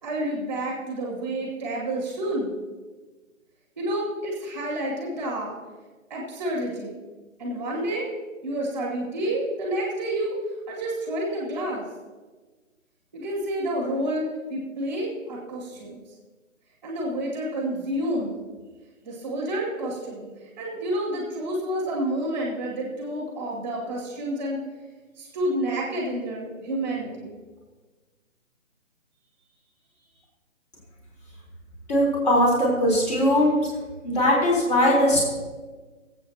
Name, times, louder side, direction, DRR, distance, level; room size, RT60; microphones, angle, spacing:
voice 1, 0.0-2.5 3.7-5.6 6.1-7.0 7.4-8.1 8.4-10.4 10.7-11.9 13.1-16.0 16.8-18.3 19.0-20.3 20.6-24.6 25.2-27.3, right 1 dB, 5° right, -3 dB, 1.8 m, -29 dB
voice 2, 31.9-33.7 34.0-35.2, left 1 dB, 30° left, -3 dB, 3.8 m, -20 dB
24.0 x 8.3 x 2.8 m, 1.3 s
figure-of-eight pair, 165°, 41 cm